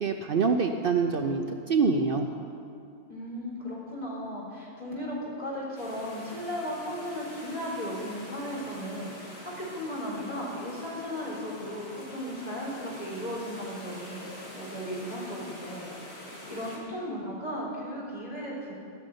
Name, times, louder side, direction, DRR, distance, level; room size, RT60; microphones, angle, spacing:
voice 1, 0.0-2.3, right 4 dB, 55° right, 5 dB, 0.8 m, -25 dB
voice 2, 3.1-18.7, equal, 35° left, -6 dB, 3.8 m, -36 dB
sound 1, 5.8-16.8, left 1 dB, 70° left, 2.8 m, -45 dB
14.0 x 6.6 x 9.9 m, 2.4 s
omnidirectional pair, 1.2 m